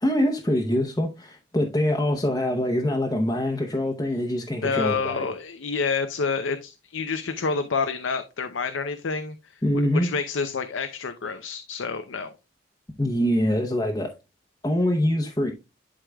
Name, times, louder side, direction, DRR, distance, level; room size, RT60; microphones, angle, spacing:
voice 1, 0.0-5.3 9.6-10.1 13.0-14.1 14.6-15.5, left 1 dB, 20° left, 0.8 m, -24 dB
voice 2, 4.5-12.3, left 5 dB, 85° left, 0.6 m, -28 dB
11.5 x 4.8 x 2.3 m
head